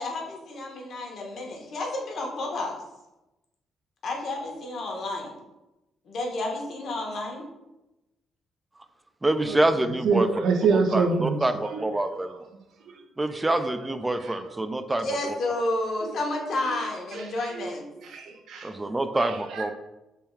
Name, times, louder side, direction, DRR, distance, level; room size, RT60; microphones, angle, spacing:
voice 1, 0.0-2.8 4.0-5.3 6.1-7.5 15.0-17.9, left 2 dB, 65° left, 0 dB, 0.9 m, -31 dB
voice 2, 9.2-10.3 10.7-12.3 13.2-15.1 18.6-19.7, right 1 dB, 15° right, 9 dB, 0.3 m, -26 dB
voice 3, 10.0-11.8 13.4-13.6 14.2-14.5 16.0-16.1 17.1-17.7 18.0-18.7 19.2-19.6, right 4 dB, 75° right, 5 dB, 0.5 m, -26 dB
3.4 x 2.2 x 4.3 m, 0.98 s
cardioid pair, 90°, 0 cm